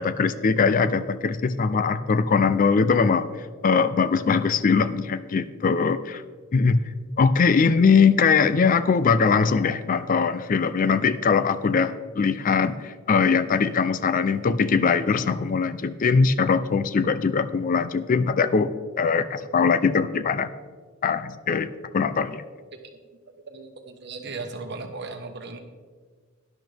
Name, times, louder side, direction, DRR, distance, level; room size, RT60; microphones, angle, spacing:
voice 1, 0.0-3.3 3.6-6.2 6.5-6.8 7.2-20.5 21.0-21.7 21.9-22.4, left 5 dB, 40° left, 13 dB, 0.4 m, -21 dB
voice 2, 23.5-25.6, right 3 dB, 55° right, 5 dB, 1.2 m, -37 dB
12.0 x 10.5 x 3.4 m, 1.5 s
head